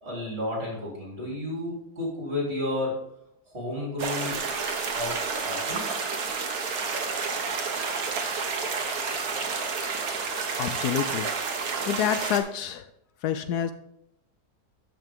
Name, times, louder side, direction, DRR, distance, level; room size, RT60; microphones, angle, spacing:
voice 1, 0.0-3.0 3.5-4.4 4.8-5.8, left 1 dB, 35° right, -3 dB, 3.8 m, -32 dB
sound 1, 4.0-12.4, right 5 dB, 60° right, 1.5 m, -30 dB
voice 2, 10.6-11.3 11.5-12.9 13.2-13.7, left 9 dB, 75° left, 11 dB, 1.1 m, -28 dB
12.0 x 5.8 x 3.7 m, 0.77 s
omnidirectional pair, 1.8 m